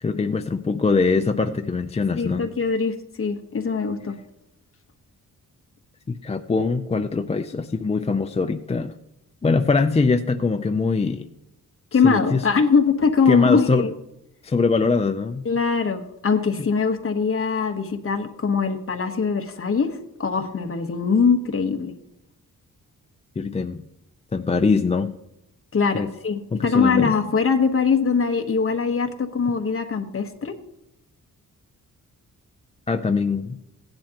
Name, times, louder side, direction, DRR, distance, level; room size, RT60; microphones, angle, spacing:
voice 1, 0.0-2.5 6.1-9.0 9.4-11.3 12.0-12.4 13.3-13.8 14.4-15.4 23.4-23.8 24.3-25.1 25.9-26.1 26.5-27.1 32.9-33.5, left 4 dB, 20° left, 7 dB, 0.4 m, -22 dB
voice 2, 2.2-4.2 11.9-13.9 15.4-21.9 25.7-30.5, left 5 dB, 40° left, 5 dB, 1.2 m, -22 dB
17.0 x 10.5 x 2.9 m, 0.86 s
wide cardioid pair, 130°, 35 cm